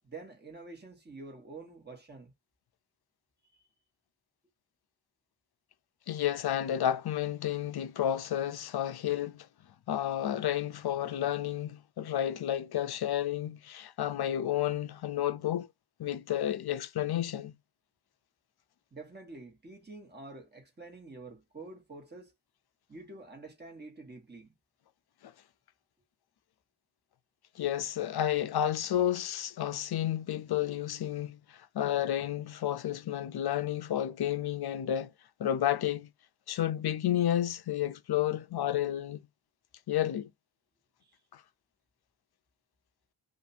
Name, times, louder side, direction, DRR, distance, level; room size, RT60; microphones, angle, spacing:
voice 1, 0.0-2.3 3.5-3.6 18.9-22.3 22.9-24.5 41.0-41.2, right 3 dB, 20° right, 1.4 m, -48 dB
voice 2, 6.1-9.5 9.9-15.7 16.0-17.5 25.2-25.3 27.6-35.1 35.4-36.1 36.5-39.2 39.9-40.3 41.3-41.4, left 11 dB, 55° left, 0.5 m, -31 dB
2.6 x 2.5 x 4.2 m
wide cardioid pair, 100°, 46 cm